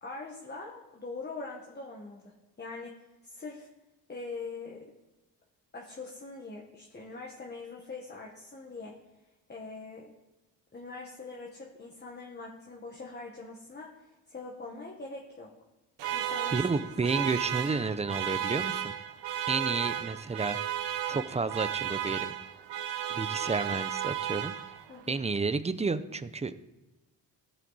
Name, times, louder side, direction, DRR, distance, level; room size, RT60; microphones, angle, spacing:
voice 1, 0.0-2.3 2.6-2.9 3.2-3.7 4.1-4.9 5.7-8.9 9.5-10.1 10.7-15.5 16.1-16.6 19.9-20.0 24.9-25.2, left 3 dB, 25° left, -2 dB, 1.4 m, -43 dB
sound 1, 16.0-25.0, right 10 dB, 75° right, 1.0 m, -34 dB
voice 2, 16.5-18.9 19.5-20.6 21.1-22.3 23.1-24.5 25.1-26.6, right 4 dB, 15° right, 13 dB, 0.5 m, -31 dB
15.5 x 7.6 x 4.1 m, 1.1 s
cardioid pair, 115°, 43 cm